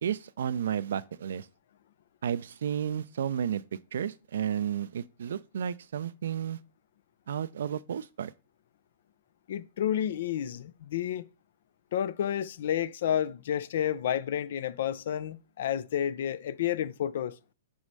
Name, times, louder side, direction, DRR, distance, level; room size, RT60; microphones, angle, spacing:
voice 1, 0.0-1.5 2.2-3.6 3.9-6.6 7.3-8.3, right 9 dB, 70° right, 0.4 m, -32 dB
voice 2, 9.5-11.3 11.9-17.3, left 10 dB, 60° left, 0.4 m, -30 dB
6.1 x 3.1 x 5.3 m
hypercardioid pair, 115°, 0 cm